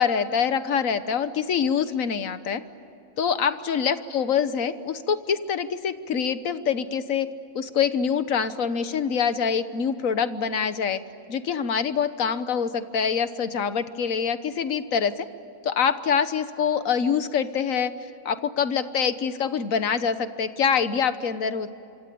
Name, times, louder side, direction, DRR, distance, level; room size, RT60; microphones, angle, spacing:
voice 1, 0.0-2.6 3.2-7.3 7.5-11.0 11.3-15.3 15.6-17.9 18.2-21.7, left 7 dB, 70° left, 12 dB, 1.5 m, -25 dB
26.5 x 25.0 x 8.6 m, 2.8 s
omnidirectional pair, 1.5 m